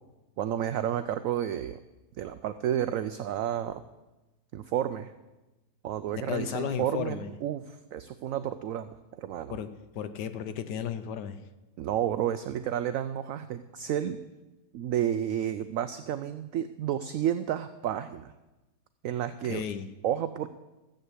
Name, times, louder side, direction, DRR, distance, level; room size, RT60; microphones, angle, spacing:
voice 1, 0.4-1.8 2.2-3.8 4.5-5.1 5.8-9.5 11.8-14.2 14.7-18.3 19.0-19.6 20.0-20.5, right 10 dB, 70° right, 11 dB, 0.8 m, -31 dB
voice 2, 6.2-7.3 9.5-9.7 9.9-11.4 19.4-19.9, left 8 dB, 75° left, 11 dB, 1.4 m, -34 dB
13.0 x 7.8 x 8.0 m, 1.1 s
omnidirectional pair, 1.9 m